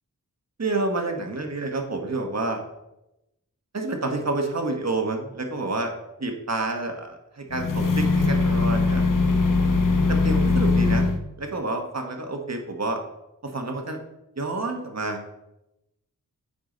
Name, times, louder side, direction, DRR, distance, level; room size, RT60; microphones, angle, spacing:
voice 1, 0.6-2.6 3.7-5.9 6.2-9.0 10.1-11.1 11.4-13.0 13.4-14.0 14.4-15.2, right 2 dB, 45° right, 3 dB, 1.3 m, -29 dB
sound 1, 7.5-11.2, left 3 dB, 60° left, 0.9 m, -21 dB
9.4 x 4.8 x 3.9 m, 0.91 s
wide cardioid pair, 50°, 36 cm